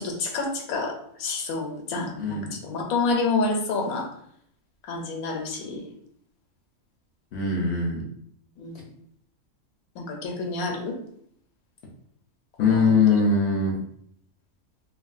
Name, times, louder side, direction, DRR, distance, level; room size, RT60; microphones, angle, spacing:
voice 1, 0.0-4.1 4.8-5.8 8.6-8.8 10.0-11.0 12.7-12.9, left 3 dB, 85° left, 3 dB, 1.1 m, -28 dB
voice 2, 2.2-2.5 7.3-8.0 12.6-13.8, left 4 dB, 65° left, -1 dB, 0.7 m, -22 dB
3.2 x 2.3 x 2.4 m, 0.67 s
omnidirectional pair, 1.4 m